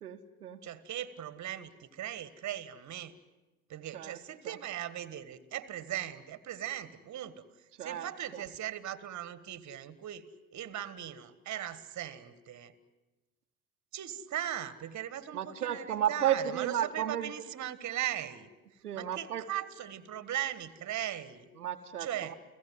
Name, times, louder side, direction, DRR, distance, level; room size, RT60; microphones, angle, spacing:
voice 1, 0.0-0.6 3.9-4.2 4.4-4.6 7.8-8.1 8.3-8.4 15.3-17.3 18.8-19.4 21.6-22.3, right 10 dB, 80° right, 4 dB, 1.2 m, -33 dB
voice 2, 0.6-3.1 3.7-10.3 10.5-12.7 13.9-21.4 22.0-22.3, right 11 dB, 40° right, 15 dB, 1.7 m, -39 dB
30.0 x 17.0 x 9.3 m, 1.1 s
figure-of-eight pair, 65°, 45 cm